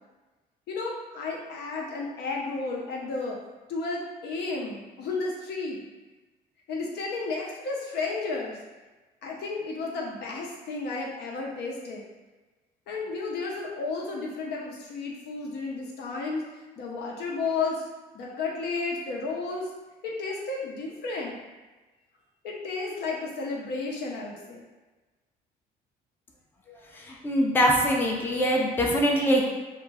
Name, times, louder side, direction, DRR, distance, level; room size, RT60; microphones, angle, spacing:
voice 1, 0.7-3.4 3.7-5.8 6.7-8.6 9.2-12.0 12.9-16.4 16.8-17.8 18.1-19.7 20.0-21.3 22.4-24.7, left 3 dB, 75° left, -1 dB, 0.6 m, -32 dB
voice 2, 27.1-29.4, equal, 10° left, -1 dB, 0.4 m, -23 dB
2.2 x 2.1 x 3.3 m, 1.2 s
cardioid pair, 105°, 17 cm